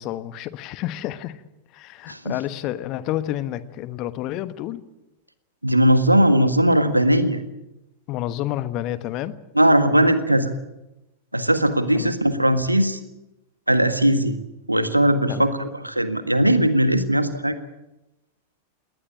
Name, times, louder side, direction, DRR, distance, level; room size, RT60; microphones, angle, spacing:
voice 1, 0.0-1.4 1.7-4.8 8.1-9.3 11.9-12.1 15.3-15.5, left 13 dB, 40° left, 14 dB, 1.3 m, -29 dB
voice 2, 5.6-7.4 9.5-10.5 11.3-13.0 13.7-14.4 14.7-17.6, right 1 dB, 85° right, 10 dB, 1.7 m, -19 dB
20.5 x 19.0 x 8.9 m, 0.96 s
figure-of-eight pair, 90°, 0 cm